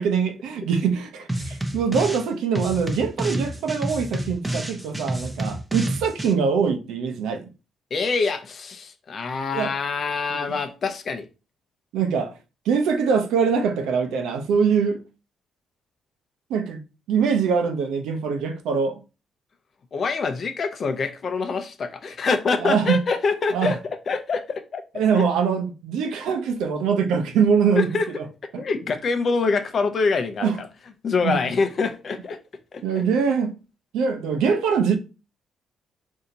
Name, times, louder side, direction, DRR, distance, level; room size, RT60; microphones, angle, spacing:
voice 1, 0.0-7.5 9.5-9.7 10.3-10.5 11.9-12.3 12.7-15.0 16.5-16.8 17.1-19.0 22.6-23.0 23.5-23.7 25.0-28.3 28.5-28.6 30.4-30.6 31.2-31.4 32.8-33.5 33.9-35.0, right 6 dB, 85° right, 0.7 m, -23 dB
sound 1, 1.3-2.3 2.5-6.3, right 1 dB, 10° right, 0.8 m, -29 dB
voice 2, 7.9-11.2 19.9-23.8 24.1-24.8 25.1-25.2 27.8-28.1 28.6-30.7 31.0-32.4 32.7-33.0, left 4 dB, 50° left, 0.7 m, -25 dB
4.2 x 2.8 x 3.9 m
cardioid pair, 90°, 0 cm